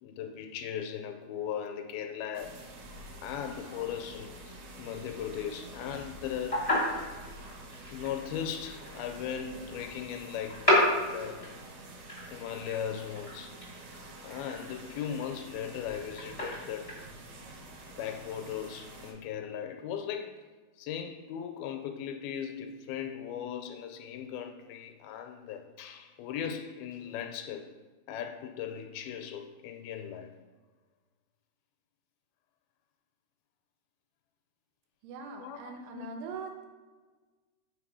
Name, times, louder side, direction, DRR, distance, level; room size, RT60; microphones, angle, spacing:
voice 1, 0.0-2.6 3.2-6.8 7.9-10.7 11.1-11.5 12.3-13.6 14.2-16.9 17.9-20.5 20.8-27.7 28.1-30.3 35.4-36.1, left 8 dB, 80° left, 2.2 m, -38 dB
sound 1, 2.3-19.1, right 2 dB, 70° right, 2.0 m, -48 dB
sound 2, 6.2-16.9, left 1 dB, 60° left, 0.3 m, -32 dB
voice 2, 35.0-36.6, right 4 dB, 90° right, 2.8 m, -41 dB
5.9 x 3.9 x 4.8 m
omnidirectional pair, 4.4 m